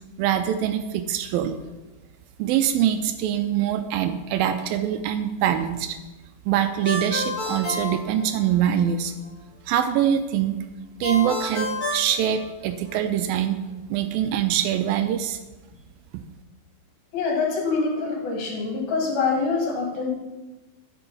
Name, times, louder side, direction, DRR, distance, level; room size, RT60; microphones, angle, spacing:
voice 1, 0.2-1.6 2.4-6.0 6.5-9.1 9.7-10.6 11.0-15.4, right 10 dB, 80° right, 9 dB, 2.2 m, -24 dB
Ringtone, 6.8-8.8 11.0-13.0, left 1 dB, 45° left, 1.2 m, -30 dB
voice 2, 17.1-20.1, left 4 dB, 75° left, -1 dB, 3.8 m, -25 dB
11.5 x 6.1 x 5.4 m, 1.1 s
omnidirectional pair, 4.3 m